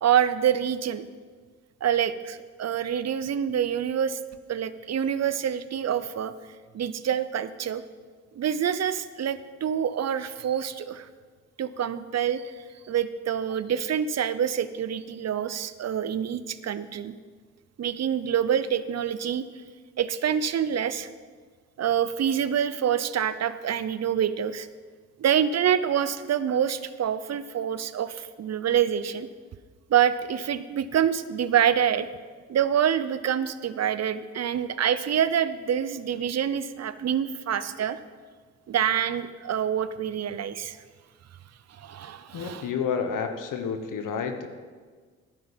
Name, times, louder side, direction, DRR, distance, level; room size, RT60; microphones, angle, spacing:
voice 1, 0.0-1.1 1.8-4.2 4.5-6.3 6.7-7.8 8.3-11.1 11.6-17.1 17.8-19.4 20.0-21.1 21.8-24.7 25.2-29.3 29.9-32.1 32.5-38.0 38.7-40.8 41.7-42.7, right 9 dB, 50° right, 14 dB, 0.8 m, -26 dB
voice 2, 42.3-44.5, left 6 dB, 65° left, 6 dB, 1.2 m, -30 dB
11.5 x 9.4 x 5.2 m, 1.5 s
supercardioid pair, 55°, 34 cm